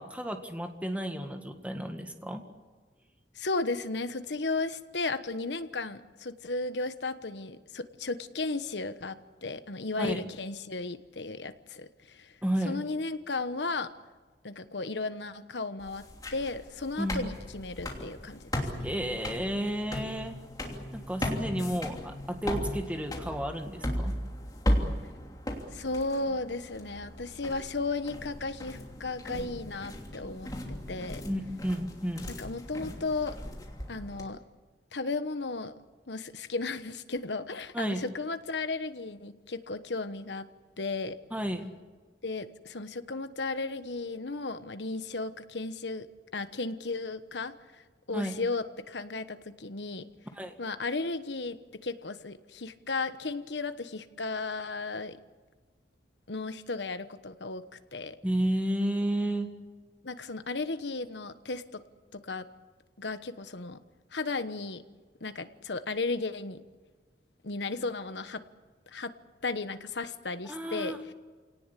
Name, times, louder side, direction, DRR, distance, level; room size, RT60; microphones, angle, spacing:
voice 1, 0.0-2.4 10.0-10.2 12.4-12.8 17.0-17.3 18.8-20.4 20.9-24.2 31.3-32.3 37.7-38.0 41.3-41.7 48.1-48.4 50.3-50.5 58.2-59.5 70.5-71.0, right 1 dB, 10° right, 5 dB, 1.8 m, -32 dB
voice 2, 3.3-12.4 12.6-13.9 14.4-16.0 16.3-18.9 25.7-30.5 30.9-31.2 32.4-33.4 33.9-34.4 34.9-35.7 36.1-40.5 40.8-41.2 42.2-46.1 46.3-47.8 48.1-50.1 50.6-55.2 56.3-57.6 57.9-58.2 60.0-61.8 62.1-62.5 63.0-63.8 64.1-64.8 65.2-66.6 67.4-68.4 68.9-69.1 69.4-71.1, left 3 dB, 80° left, 11 dB, 1.2 m, -35 dB
sound 1, 15.8-34.2, left 1 dB, 20° left, 3.0 m, -36 dB
27.5 x 18.5 x 8.4 m, 1.4 s
head